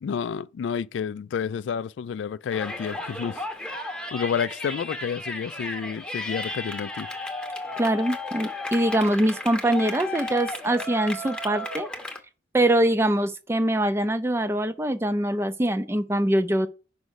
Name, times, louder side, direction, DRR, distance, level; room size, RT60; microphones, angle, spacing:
voice 1, 0.0-3.4 4.1-7.1, left 7 dB, 75° left, 0.3 m, -30 dB
Yell, 2.5-12.2, left 2 dB, 5° left, 0.8 m, -34 dB
voice 2, 7.8-11.9 12.5-16.7, right 1 dB, 15° right, 0.4 m, -23 dB
5.3 x 4.8 x 6.3 m
head